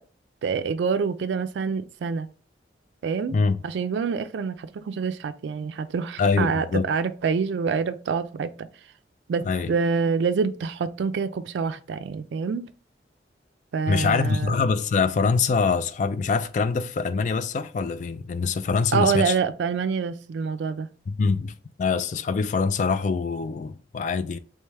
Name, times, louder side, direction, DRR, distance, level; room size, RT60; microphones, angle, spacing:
voice 1, 0.4-2.3 3.0-3.4 3.6-8.7 9.3-12.7 13.7-14.6 18.9-20.9, right 5 dB, 85° right, 0.3 m, -26 dB
voice 2, 6.2-6.9 9.4-9.7 13.9-19.3 21.1-24.4, left 4 dB, 45° left, 0.3 m, -24 dB
3.3 x 3.1 x 3.3 m
head